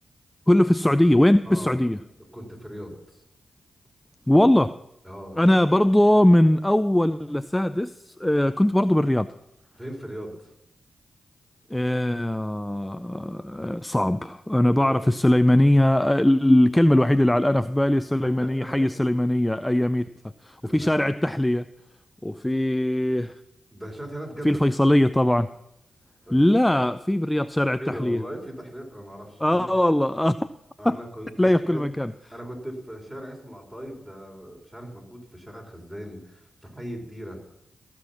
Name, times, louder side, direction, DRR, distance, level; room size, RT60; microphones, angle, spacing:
voice 1, 0.5-2.0 4.3-4.8 5.4-9.3 11.7-20.1 20.4-21.7 22.2-23.4 24.4-25.5 26.3-28.2 29.4-30.4 30.8-31.0 31.4-32.1, left 1 dB, 10° left, 12 dB, 0.4 m, -20 dB
voice 2, 1.4-1.8 2.3-3.0 5.0-5.4 9.8-10.5 14.8-15.1 18.2-18.5 18.8-18.9 20.6-20.9 23.7-24.6 26.3-26.4 27.8-29.6 30.8-31.8 32.3-37.4, equal, 15° right, 0 dB, 4.9 m, -38 dB
15.5 x 6.0 x 7.1 m, 0.82 s
supercardioid pair, 40°, 0 cm